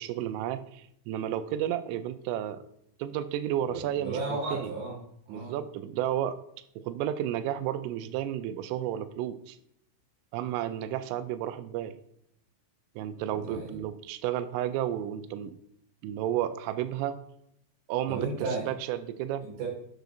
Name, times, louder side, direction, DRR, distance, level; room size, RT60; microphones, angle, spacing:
voice 1, 0.0-2.6 3.0-4.7 5.3-6.4 6.8-9.6 10.3-12.0 13.0-15.6 16.0-17.2 17.9-18.3 18.7-19.4, right 11 dB, 90° right, 12 dB, 3.2 m, -32 dB
voice 2, 3.7-5.0 5.3-5.6 13.3-13.8 18.1-18.7 19.4-19.7, right 3 dB, 70° right, -2 dB, 3.6 m, -34 dB
9.1 x 6.6 x 2.6 m, 0.73 s
omnidirectional pair, 5.7 m